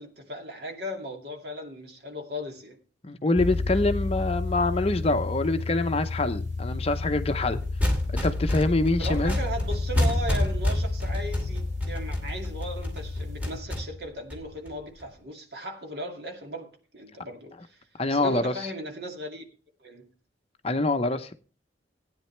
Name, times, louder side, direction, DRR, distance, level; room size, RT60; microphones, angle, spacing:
voice 1, 0.0-2.8 9.0-19.4 19.8-20.1, equal, 60° right, 2.3 m, -37 dB
voice 2, 3.0-7.6 8.2-9.4 18.0-18.5 20.6-21.3, left 2 dB, 30° left, 0.7 m, -25 dB
sound 1, 3.4-13.6, left 3 dB, 40° right, 3.5 m, -32 dB
sound 2, 7.6-15.0, left 1 dB, 10° right, 2.5 m, -29 dB
16.5 x 9.5 x 3.3 m
head